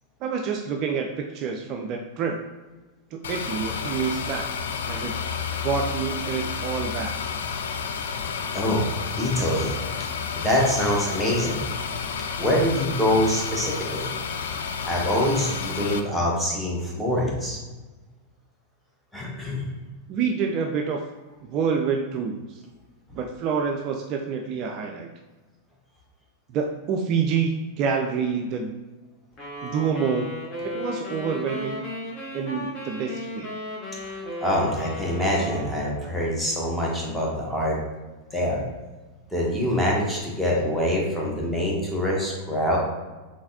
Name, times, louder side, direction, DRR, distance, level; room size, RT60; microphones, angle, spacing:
voice 1, 0.2-2.4 3.1-4.5 4.9-5.1 5.6-7.1 20.1-21.0 21.4-22.6 23.1-25.1 26.5-28.8 29.6-30.3 30.6-31.8 32.3-33.5, right 6 dB, 40° right, 2 dB, 0.3 m, -27 dB
sound 1, 3.2-16.0, left 6 dB, 60° left, 0.3 m, -31 dB
voice 2, 9.2-9.8 10.4-11.7 12.4-14.1 14.8-17.6 19.1-19.7 34.4-37.8 38.3-38.6 39.3-42.8, left 1 dB, 5° left, -4 dB, 1.0 m, -24 dB
sound 2, 29.4-36.3, left 1 dB, 35° left, 0.9 m, -36 dB
3.9 x 3.3 x 2.6 m, 1.2 s
figure-of-eight pair, 90°, 0 cm